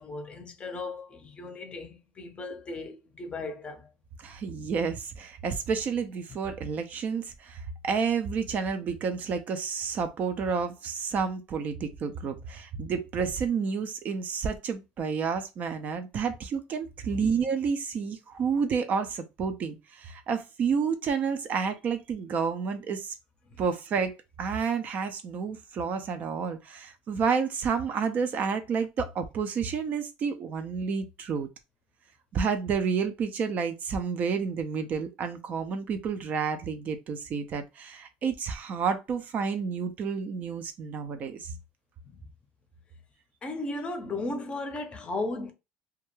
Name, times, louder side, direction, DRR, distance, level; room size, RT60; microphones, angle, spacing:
voice 1, 0.0-3.9 17.1-17.3 23.5-23.6 42.0-42.3 43.4-45.5, left 2 dB, 30° left, 0.6 m, -36 dB
voice 2, 4.2-23.1 23.6-31.5 32.3-41.6, right 6 dB, 45° right, 0.4 m, -30 dB
2.3 x 2.1 x 3.0 m
supercardioid pair, 95°, 4 cm